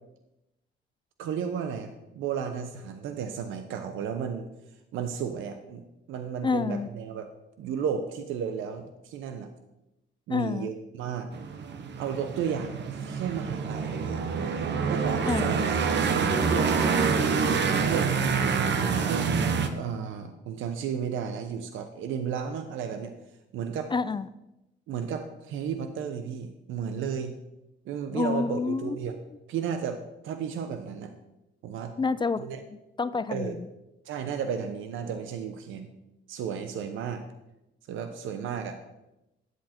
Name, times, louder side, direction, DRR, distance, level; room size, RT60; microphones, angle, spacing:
voice 1, 1.2-4.5 4.9-5.8 6.1-7.3 7.6-9.5 10.3-11.3 12.0-14.2 14.9-15.6 16.5-16.7 17.8-18.1 19.0-19.3 19.7-23.1 23.5-23.9 24.9-27.4 27.8-29.1 29.5-31.1 31.6-31.9 32.4-32.6 33.3-33.5 34.0-35.9 36.3-37.2 37.9-38.8, right 7 dB, 85° right, 8 dB, 0.9 m, -33 dB
voice 2, 6.4-6.9 10.3-10.7 15.2-15.6 23.9-24.3 28.1-29.0 32.0-32.5 33.0-33.7, left 4 dB, 25° left, 15 dB, 0.4 m, -28 dB
sound 1, 11.3-19.7, right 5 dB, 60° right, 1.1 m, -26 dB
11.0 x 7.7 x 4.4 m, 0.93 s
cardioid pair, 90°, 20 cm